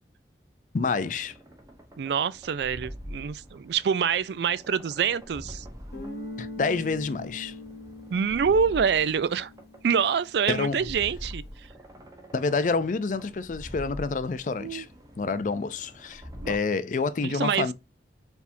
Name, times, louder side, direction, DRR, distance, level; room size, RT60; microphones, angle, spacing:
voice 1, 0.7-1.3 6.4-7.5 10.5-10.9 12.3-14.9 15.2-17.7, left 4 dB, 45° left, 0.4 m, -28 dB
sound 1, 1.0-16.6, equal, 20° right, 1.0 m, -45 dB
voice 2, 2.0-5.7 8.1-9.5 9.8-11.4 14.6-14.9 16.4-16.6 17.2-17.7, right 6 dB, 70° right, 0.4 m, -26 dB
Guitar, 5.9-10.5, left 2 dB, 65° left, 1.3 m, -42 dB
4.7 x 3.5 x 2.6 m
head